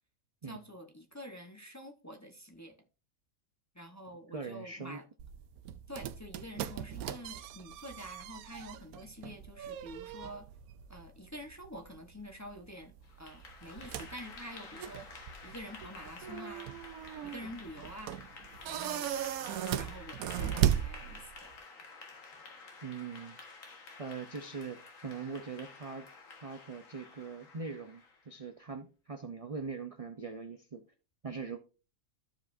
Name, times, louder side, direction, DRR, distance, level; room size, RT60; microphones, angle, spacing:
voice 1, 0.5-2.8 3.7-5.0 5.9-10.5 10.9-16.8 17.2-18.1 18.7-19.1 19.7-21.5, equal, 15° left, 0.8 m, -47 dB
voice 2, 4.3-5.0 22.8-23.4 24.0-26.1 26.4-30.8 31.2-31.6, right 5 dB, 40° right, 0.5 m, -42 dB
sound 1, 5.2-21.6, right 10 dB, 85° right, 1.0 m, -38 dB
Clapping / Applause, 13.0-28.3, left 4 dB, 70° left, 1.8 m, -51 dB
13.5 x 4.9 x 2.6 m
omnidirectional pair, 1.5 m